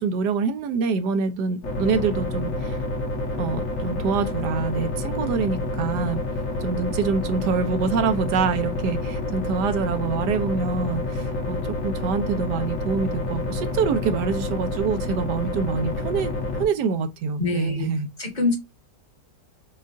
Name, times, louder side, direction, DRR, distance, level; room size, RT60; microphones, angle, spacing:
voice 1, 0.0-2.8 3.4-6.2 6.6-16.3 16.6-18.1, right 5 dB, 80° right, 1.3 m, -25 dB
sound 1, 1.6-16.7, left 2 dB, 50° left, 1.6 m, -28 dB
voice 2, 17.4-17.9 18.2-18.6, left 3 dB, 30° left, 1.4 m, -24 dB
6.3 x 2.4 x 2.5 m
omnidirectional pair, 1.9 m